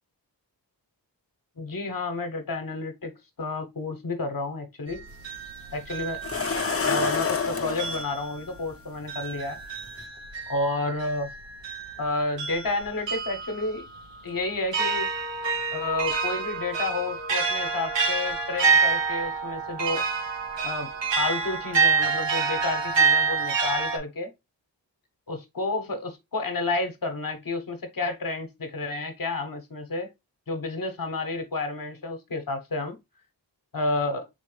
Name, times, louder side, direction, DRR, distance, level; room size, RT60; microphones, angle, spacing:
voice 1, 1.6-3.1 3.4-5.0 5.7-6.2 6.8-9.6 10.5-11.3 12.0-13.8 14.2-15.1 15.7-20.0 20.6-24.3 25.3-30.1 30.5-33.0 33.7-34.3, left 2 dB, 50° left, 1.0 m, -30 dB
sound 1, 4.9-7.4 7.8-24.0, right 5 dB, 75° right, 0.9 m, -28 dB
sound 2, 5.1-5.2 6.2-8.0 9.3-9.4 9.9-10.0, left 5 dB, 30° left, 0.7 m, -27 dB
4.1 x 3.2 x 3.2 m
cardioid pair, 45°, 44 cm